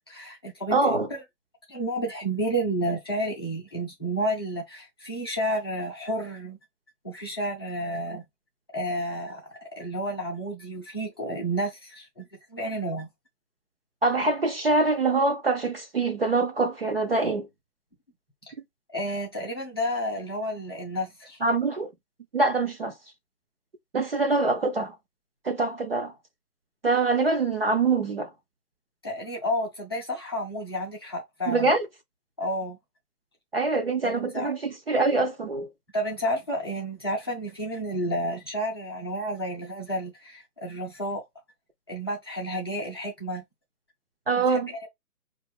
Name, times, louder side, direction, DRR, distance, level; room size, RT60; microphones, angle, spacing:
voice 1, 0.1-0.8 1.1-1.2 1.7-6.6 7.0-8.2 8.7-13.1 18.9-21.4 29.0-31.7 32.4-32.8 34.0-34.5 35.9-41.2 41.9-43.4 44.4-44.9, equal, 15° left, 0.6 m, -31 dB
voice 2, 0.7-1.1 14.0-17.5 21.4-21.9 22.3-22.9 23.9-24.9 25.4-26.1 26.8-28.3 31.5-31.9 33.5-35.7 44.3-44.9, right 3 dB, 40° right, 0.6 m, -24 dB
4.5 x 2.5 x 3.4 m
figure-of-eight pair, 145°, 47 cm